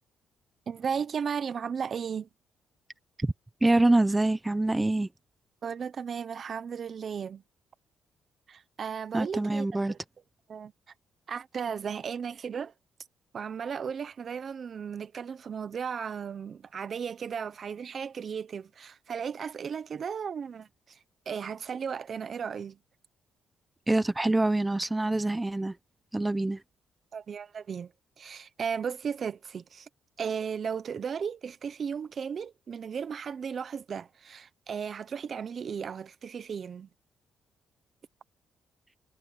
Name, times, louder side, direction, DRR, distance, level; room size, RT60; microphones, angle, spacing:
voice 1, 0.7-2.3 5.6-7.4 8.5-10.0 10.5-10.7 11.3-12.7 13.3-21.0 21.3-22.8 27.1-27.9 28.2-29.9 30.2-36.9, right 7 dB, 50° right, 0.9 m, -35 dB
voice 2, 3.6-5.1 9.1-9.9 23.9-25.7 26.1-26.6, right 2 dB, 15° right, 1.1 m, -25 dB
cardioid pair, 90°, 0 cm